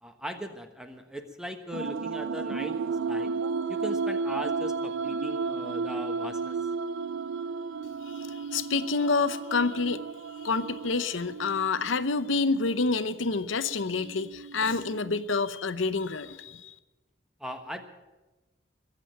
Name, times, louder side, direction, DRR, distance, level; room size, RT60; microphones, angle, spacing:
voice 1, 0.0-3.3 3.7-6.6 17.4-17.8, equal, 5° right, 5 dB, 1.2 m, -39 dB
sound 1, 1.7-15.2, right 4 dB, 80° right, 0.5 m, -33 dB
voice 2, 8.0-10.0 10.4-16.8, left 4 dB, 85° left, 12 dB, 0.8 m, -28 dB
21.5 x 7.6 x 8.8 m, 1.1 s
head